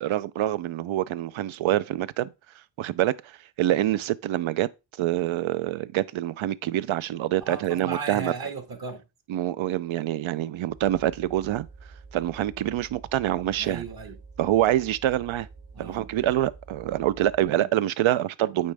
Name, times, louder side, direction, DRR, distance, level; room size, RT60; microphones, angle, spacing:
voice 1, 0.0-2.3 2.8-4.7 5.0-8.3 9.3-11.7 12.1-13.8 14.4-15.5 15.8-18.7, right 13 dB, 85° right, 0.5 m, -26 dB
voice 2, 7.4-9.0 13.6-14.2 15.7-16.1 17.5-17.7, right 4 dB, 50° right, 1.5 m, -36 dB
sound 1, 10.7-17.6, right 4 dB, 65° right, 2.9 m, -48 dB
8.6 x 4.2 x 3.3 m
cardioid pair, 85°, 46 cm